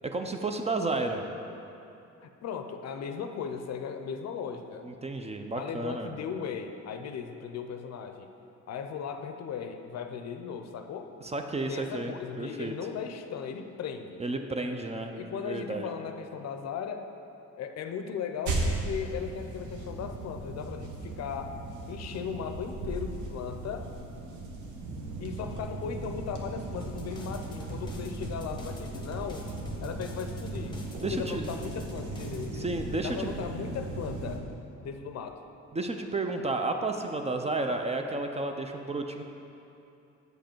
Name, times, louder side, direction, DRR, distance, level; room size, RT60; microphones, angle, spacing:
voice 1, 0.1-1.2 4.8-6.1 11.2-12.7 14.2-15.9 31.0-31.4 32.5-33.3 35.7-39.2, right 2 dB, 20° right, 5 dB, 0.5 m, -32 dB
voice 2, 2.2-4.9 5.5-8.3 8.7-11.1 11.7-14.2 15.2-17.0 17.6-21.5 21.9-23.9 25.2-29.4 29.8-30.8 31.1-32.7 33.0-34.4 34.8-35.4, left 7 dB, 60° left, 6 dB, 0.6 m, -37 dB
sound 1, 18.5-34.4, right 2 dB, 75° right, 1.0 m, -37 dB
sound 2, 26.8-32.5, left 1 dB, 15° left, 1.0 m, -46 dB
7.8 x 5.2 x 4.4 m, 2.8 s
cardioid pair, 90°, 30 cm